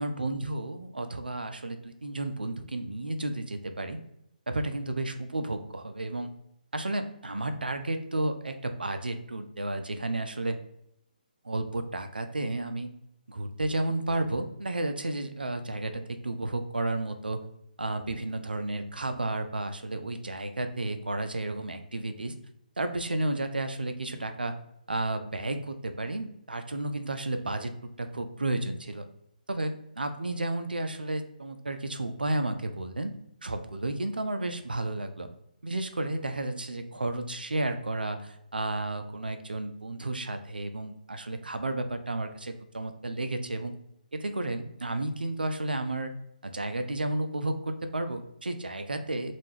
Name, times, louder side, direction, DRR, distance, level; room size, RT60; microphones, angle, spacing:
voice 1, 0.0-4.0 4.5-6.3 6.7-10.6 11.4-12.9 13.3-17.4 17.8-22.4 22.8-24.5 24.9-27.7 28.0-29.1 29.5-33.1 33.4-35.3 35.6-43.7 44.1-46.1 46.4-49.3, right 2 dB, 75° right, 7 dB, 0.3 m, -32 dB
2.2 x 2.1 x 3.2 m, 0.77 s
figure-of-eight pair, 140°, 5 cm